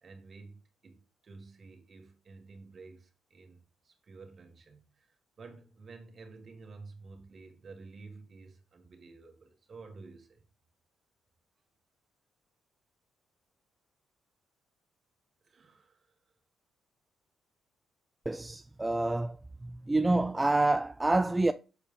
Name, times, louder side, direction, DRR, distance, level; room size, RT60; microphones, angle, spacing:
voice 1, 0.0-10.4 15.4-16.1, right 3 dB, 45° right, 1.7 m, -51 dB
voice 2, 18.3-19.4 19.6-21.5, right 2 dB, 15° right, 0.3 m, -27 dB
7.2 x 4.5 x 3.6 m
cardioid pair, 90°, 0 cm